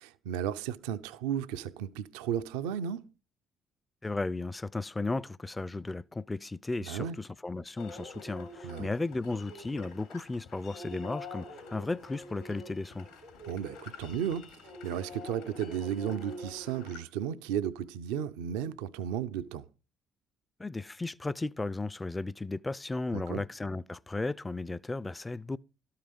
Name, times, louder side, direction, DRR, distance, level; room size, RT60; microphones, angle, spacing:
voice 1, 0.0-3.1 6.8-7.2 8.6-8.9 13.5-19.7 23.1-23.4, right 9 dB, 80° right, 0.4 m, -34 dB
voice 2, 4.0-13.1 20.6-25.6, left 3 dB, 20° left, 0.4 m, -35 dB
sound 1, 7.8-17.0, left 1 dB, 85° left, 3.0 m, -46 dB
12.5 x 5.7 x 5.1 m
hypercardioid pair, 50°, 0 cm